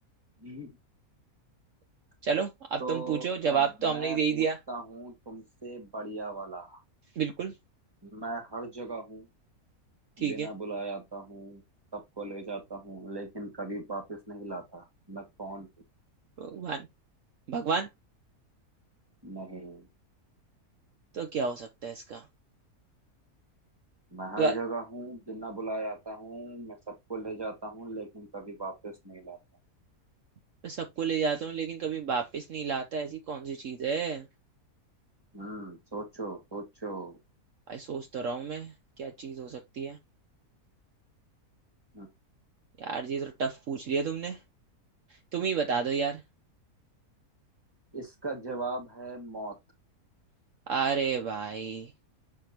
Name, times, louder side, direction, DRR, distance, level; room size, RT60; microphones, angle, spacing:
voice 1, 0.4-0.8 2.8-6.8 8.0-9.3 10.2-11.6 11.9-15.7 19.2-19.9 24.1-29.4 35.3-37.2 41.9-42.1 47.9-49.6, right 2 dB, 15° right, 2.1 m, -38 dB
voice 2, 2.2-4.6 7.2-7.5 10.2-10.5 16.4-16.8 17.5-17.9 21.1-22.2 24.4-24.5 30.6-34.2 37.7-38.7 39.0-40.0 42.8-44.4 45.3-46.2 50.7-51.9, right 6 dB, 60° right, 1.2 m, -30 dB
6.7 x 5.8 x 3.0 m
omnidirectional pair, 1.6 m